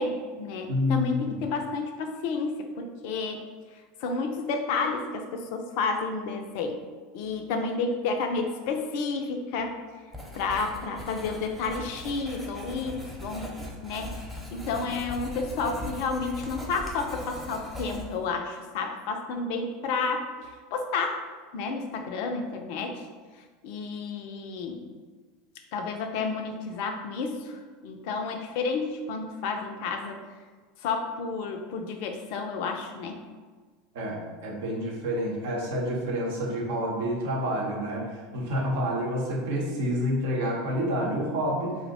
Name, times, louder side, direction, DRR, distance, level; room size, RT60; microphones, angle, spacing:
voice 1, 0.0-3.4 4.0-6.8 7.1-9.8 10.3-13.5 13.8-14.2 14.5-21.2 21.5-23.1 23.6-24.9 25.7-30.2 30.8-33.2, left 4 dB, 60° left, 5 dB, 0.4 m, -31 dB
voice 2, 0.7-1.4 33.9-41.8, equal, 65° right, -2 dB, 0.7 m, -28 dB
Writing, 10.1-18.3, left 1 dB, 5° right, 0.8 m, -40 dB
2.5 x 2.1 x 3.9 m, 1.4 s
figure-of-eight pair, 80°, 0 cm